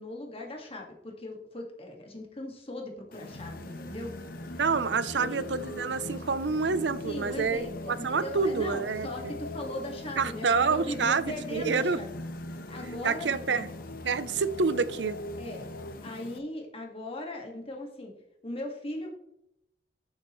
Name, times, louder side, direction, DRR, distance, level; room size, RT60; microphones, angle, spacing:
voice 1, 0.0-4.1 5.1-5.4 7.0-12.1 12.5-13.3 15.4-15.6 16.0-18.1 18.4-19.1, left 1 dB, 35° left, 1 dB, 1.8 m, -38 dB
sound 1, 3.1-16.4, left 2 dB, 55° left, 1.0 m, -46 dB
Singing, 3.3-15.9, left 1 dB, 85° left, 1.0 m, -41 dB
voice 2, 4.6-9.3 10.2-12.0 13.0-13.7 14.0-15.2, right 5 dB, 75° right, 15 dB, 0.6 m, -28 dB
13.5 x 7.3 x 3.1 m, 0.77 s
head